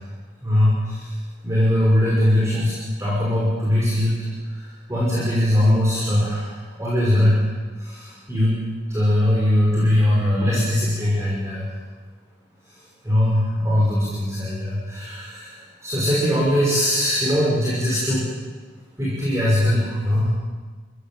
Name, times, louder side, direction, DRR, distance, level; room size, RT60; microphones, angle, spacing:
voice 1, 0.4-1.1 1.4-4.3 4.9-7.4 7.8-8.7 8.9-11.7 13.0-15.6 15.8-18.3 19.0-20.3, left 1 dB, 15° right, -6 dB, 5.8 m, -20 dB
29.0 x 16.0 x 9.2 m, 1.5 s
head